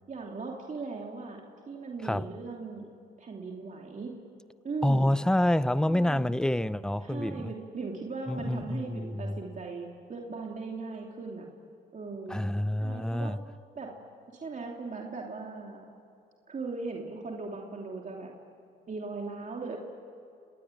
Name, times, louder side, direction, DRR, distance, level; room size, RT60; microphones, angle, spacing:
voice 1, 0.1-2.9 3.2-4.1 4.6-5.1 5.8-6.3 7.0-11.5 11.9-12.5 12.8-13.3 13.7-13.9 14.3-15.8 16.5-18.3 18.9-19.8, right 4 dB, 40° right, 2.9 m, -38 dB
voice 2, 4.8-7.5 8.3-9.4 12.3-13.4, left 1 dB, 5° left, 0.7 m, -27 dB
29.5 x 21.0 x 9.1 m
cardioid pair, 90°, 20 cm